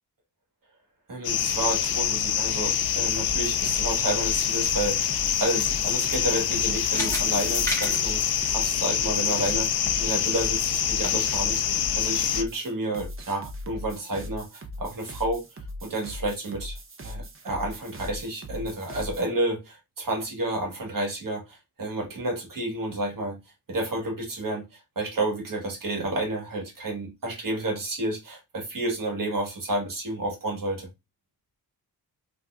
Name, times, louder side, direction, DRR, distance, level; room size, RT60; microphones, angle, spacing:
voice 1, 1.1-15.4 15.8-16.8 17.0-23.4 23.7-30.9, right 1 dB, 55° right, 1.5 m, -30 dB
sound 1, 1.2-12.4, left 9 dB, 65° left, 0.5 m, -25 dB
sound 2, 3.1-19.2, left 1 dB, 35° right, 0.8 m, -40 dB
sound 3, 4.5-9.3 9.7-9.8 10.3-10.4, equal, 10° left, 1.5 m, -35 dB
3.5 x 2.9 x 2.4 m
cardioid pair, 75°, 39 cm